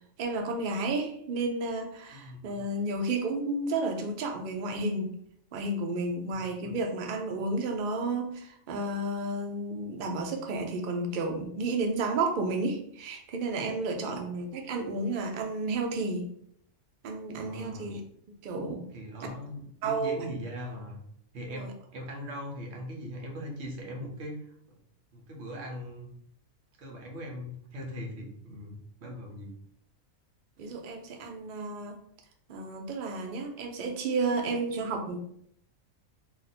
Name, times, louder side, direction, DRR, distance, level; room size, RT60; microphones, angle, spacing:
voice 1, 0.2-5.2 5.5-16.3 17.0-18.0 18.4-18.8 19.8-20.2 21.5-21.7 30.6-32.0 32.5-35.2, right 3 dB, 80° right, 3 dB, 0.4 m, -32 dB
voice 2, 2.1-2.6 6.3-6.7 17.4-17.9 18.9-21.0 21.3-24.4 24.7-24.8 25.1-26.1 26.8-29.5, equal, 55° right, 0 dB, 1.0 m, -40 dB
2.5 x 2.4 x 4.1 m, 0.66 s
omnidirectional pair, 1.5 m